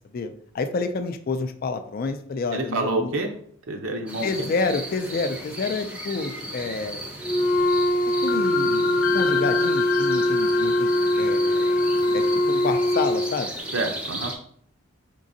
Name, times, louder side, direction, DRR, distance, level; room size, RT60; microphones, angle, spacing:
voice 1, 0.1-3.2 4.2-7.0 8.2-8.9 9.1-10.9 11.2-11.7 12.1-13.5, left 4 dB, 45° left, 8 dB, 0.3 m, -29 dB
voice 2, 2.5-3.3 3.7-4.5 13.7-14.3, right 2 dB, 75° right, 3 dB, 0.6 m, -27 dB
sound 1, 4.1-14.3, right 1 dB, 5° right, 0.6 m, -36 dB
sound 2, 5.9-6.7 7.0-7.1 8.3-13.2, left 8 dB, 80° left, 0.7 m, -31 dB
Wind instrument woodwind instrument, 7.2-13.3, left 1 dB, 20° left, 0.9 m, -22 dB
5.0 x 3.7 x 2.6 m, 0.62 s
head